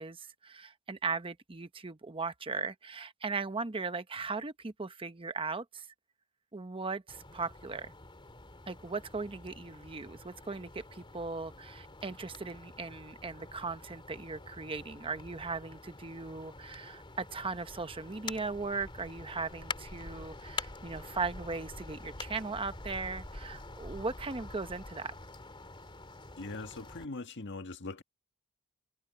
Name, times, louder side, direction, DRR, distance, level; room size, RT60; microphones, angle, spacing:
voice 1, 0.0-5.9 6.5-7.9 8.7-25.1, right 4 dB, 25° right, 0.8 m, -38 dB
sound 1, 7.1-27.0, left 3 dB, 25° left, 2.8 m, -46 dB
voice 2, 26.4-28.0, left 3 dB, 55° left, 1.7 m, -41 dB
head